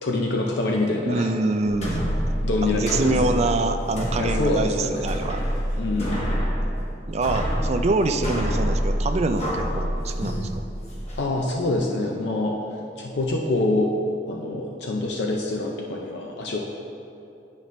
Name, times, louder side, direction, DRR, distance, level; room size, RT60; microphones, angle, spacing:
voice 1, 0.0-1.3 2.4-3.5 4.2-5.3 5.8-6.4 11.2-12.6 13.0-13.9 14.3-16.6, left 2 dB, 70° left, 0 dB, 0.5 m, -26 dB
voice 2, 1.0-2.0 2.6-5.4 7.1-10.7, right 2 dB, 40° right, 7 dB, 0.4 m, -25 dB
sound 1, 1.7-11.2, equal, 40° left, 1.2 m, -27 dB
10.0 x 5.3 x 3.1 m, 2.8 s
head